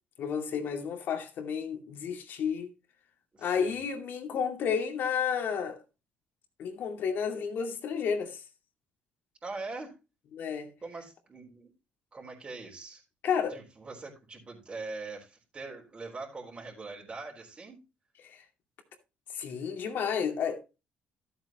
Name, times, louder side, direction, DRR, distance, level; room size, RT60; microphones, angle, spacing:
voice 1, 0.2-2.7 3.4-5.8 6.6-8.4 10.3-10.7 13.2-13.6 18.2-18.4 19.3-20.8, left 7 dB, 65° left, 2.4 m, -31 dB
voice 2, 3.3-3.8 9.4-9.9 10.8-11.7 12.1-13.0 13.5-17.8, right 3 dB, 30° right, 3.9 m, -42 dB
13.0 x 8.0 x 3.0 m
cardioid pair, 95°, 4 cm